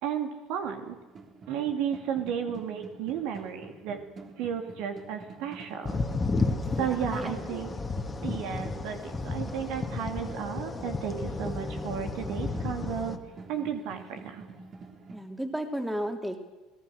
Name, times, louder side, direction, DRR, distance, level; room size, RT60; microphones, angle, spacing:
voice 1, 0.0-1.0 1.5-4.0 4.4-6.0 6.7-13.2 13.5-14.4, right 8 dB, 70° right, 6 dB, 2.6 m, -33 dB
sound 1, 0.6-15.2, right 3 dB, 40° right, 3.5 m, -48 dB
sound 2, 5.9-13.2, left 3 dB, 25° left, 2.0 m, -32 dB
voice 2, 6.7-7.6 15.1-16.4, equal, 5° right, 5 dB, 3.2 m, -34 dB
25.0 x 18.5 x 6.5 m, 1.2 s
hypercardioid pair, 75°, 0 cm